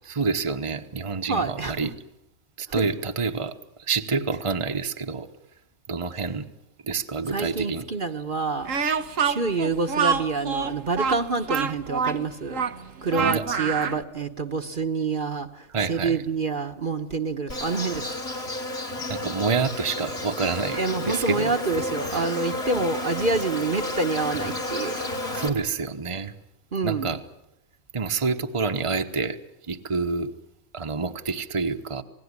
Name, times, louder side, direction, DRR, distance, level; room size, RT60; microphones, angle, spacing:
voice 1, 0.0-1.9 2.6-5.3 5.9-6.5 6.8-7.8 13.1-13.4 15.7-16.2 19.1-20.8 21.0-21.5 25.3-26.3 26.8-27.2 27.9-29.4 29.6-30.3 30.7-32.0, right 4 dB, 25° right, 1.1 m, -27 dB
voice 2, 1.3-1.9 2.8-2.9 7.3-8.8 9.2-12.6 13.0-18.1 20.7-25.4 26.7-27.2, right 4 dB, 45° right, 1.3 m, -27 dB
Speech, 8.7-14.0, right 6 dB, 90° right, 1.5 m, -26 dB
Insect, 17.5-25.5, left 1 dB, 55° left, 3.2 m, -31 dB
27.0 x 19.0 x 9.7 m
omnidirectional pair, 1.3 m